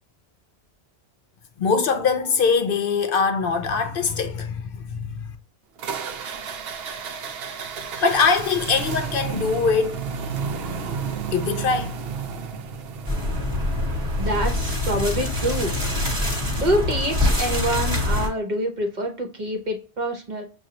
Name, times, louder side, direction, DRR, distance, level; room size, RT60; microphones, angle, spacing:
voice 1, 1.6-4.6 4.9-5.2 8.0-10.0 11.3-11.9, left 5 dB, 65° left, 0.7 m, -22 dB
sound 1, 5.8-16.0, right 5 dB, 70° right, 0.8 m, -32 dB
sound 2, 13.0-18.3, left 2 dB, 30° right, 1.3 m, -24 dB
voice 2, 14.2-15.7 16.6-20.4, equal, 45° right, 1.0 m, -26 dB
6.2 x 2.4 x 2.8 m
omnidirectional pair, 1.1 m